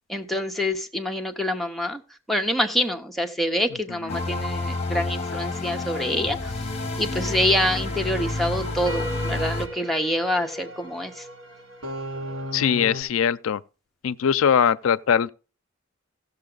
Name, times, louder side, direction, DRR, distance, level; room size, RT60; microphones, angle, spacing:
voice 1, 0.1-2.0 2.3-6.5 7.0-11.2, left 1 dB, ahead, 0.8 m, -26 dB
sound 1, 4.1-9.7, left 2 dB, 30° left, 1.1 m, -29 dB
sound 2, 7.2-13.0, equal, 75° right, 4.4 m, -36 dB
voice 2, 12.5-13.6 14.0-15.3, left 7 dB, 90° left, 0.4 m, -21 dB
15.5 x 6.8 x 3.9 m
head